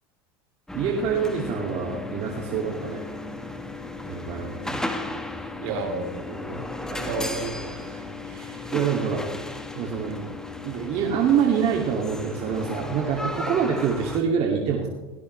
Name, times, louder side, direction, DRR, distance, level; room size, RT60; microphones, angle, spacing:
sound 1, 0.7-14.2, left 2 dB, 5° left, 1.9 m, -35 dB
voice 1, 0.7-3.0 4.0-4.8 8.7-9.2 9.7-10.1 10.6-14.9, right 7 dB, 55° right, 0 dB, 2.7 m, -25 dB
voice 2, 5.6-8.7 10.0-10.3, right 3 dB, 75° right, 2 dB, 4.0 m, -34 dB
18.0 x 17.0 x 3.4 m, 1.1 s
supercardioid pair, 100°, 13 cm